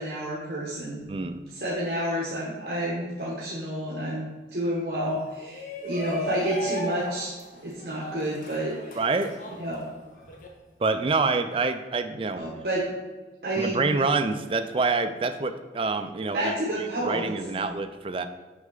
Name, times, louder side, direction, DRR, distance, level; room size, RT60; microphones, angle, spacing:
voice 1, 0.0-1.1 1.5-7.3 7.6-9.0 9.6-9.8 12.4-12.8 13.4-13.8 16.3-17.6, right 1 dB, 60° right, -4 dB, 1.0 m, -30 dB
voice 2, 1.1-1.4 9.0-9.3 10.8-12.5 13.6-16.5 17.0-18.3, right 3 dB, 30° right, 9 dB, 0.3 m, -26 dB
Shout, 5.4-10.5, right 1 dB, 50° left, 1.0 m, -36 dB
6.2 x 5.4 x 3.8 m, 1.3 s
head